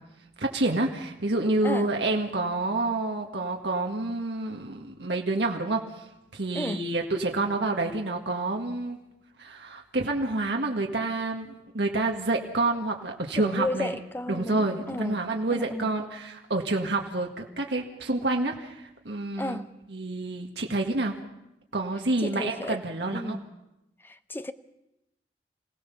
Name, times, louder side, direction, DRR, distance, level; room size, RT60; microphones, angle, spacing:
voice 1, 0.4-5.8 6.3-9.0 9.4-14.0 14.3-19.6 19.9-21.1 21.7-23.4, right 2 dB, 70° right, 1.9 m, -28 dB
voice 2, 13.4-15.2 15.5-15.9 19.4-19.7 22.2-22.8 23.1-23.4 24.0-24.5, left 1 dB, 10° left, 0.7 m, -33 dB
27.0 x 17.0 x 7.1 m
head